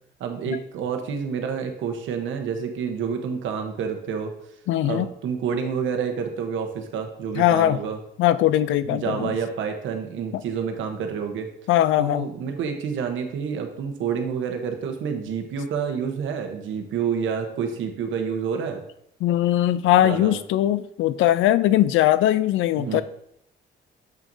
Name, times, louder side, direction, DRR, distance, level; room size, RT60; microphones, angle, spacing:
voice 1, 0.2-4.3 4.8-8.0 8.9-11.5 12.0-18.8 20.0-20.4 22.8-23.0, right 6 dB, 80° right, 5 dB, 1.0 m, -28 dB
voice 2, 4.7-5.1 7.4-7.8 8.2-9.4 11.7-12.3 19.2-23.0, left 13 dB, 85° left, 15 dB, 0.4 m, -20 dB
7.5 x 6.0 x 2.7 m, 0.74 s
cardioid pair, 90°, 20 cm